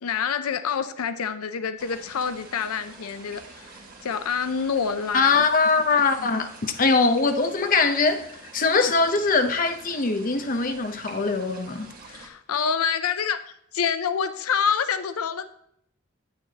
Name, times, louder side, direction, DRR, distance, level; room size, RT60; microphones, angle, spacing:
voice 1, 0.0-5.5 6.2-6.3 12.0-13.4 13.7-15.5, left 7 dB, 85° left, 0.5 m, -27 dB
sound 1, 1.8-12.3, right 3 dB, 45° right, 1.4 m, -46 dB
voice 2, 5.1-11.9, left 4 dB, 40° left, 0.7 m, -22 dB
9.5 x 8.5 x 2.8 m
head